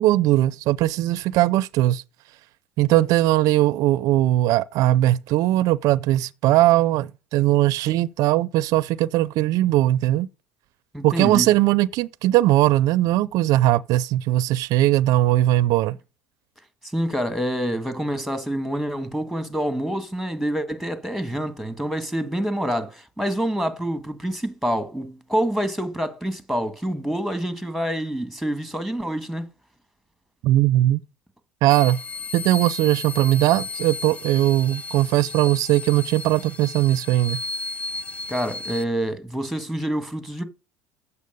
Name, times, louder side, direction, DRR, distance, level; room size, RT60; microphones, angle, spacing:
voice 1, 0.0-2.0 2.8-10.3 11.0-16.0 30.4-31.0 31.6-32.0 32.3-37.4, right 15 dB, 65° right, 0.4 m, -19 dB
voice 2, 10.9-11.5 16.9-29.4 38.3-40.4, equal, ahead, 1.6 m, -27 dB
sound 1, 31.7-38.8, left 3 dB, 20° left, 0.6 m, -34 dB
8.3 x 6.8 x 5.2 m
supercardioid pair, 90°, 7 cm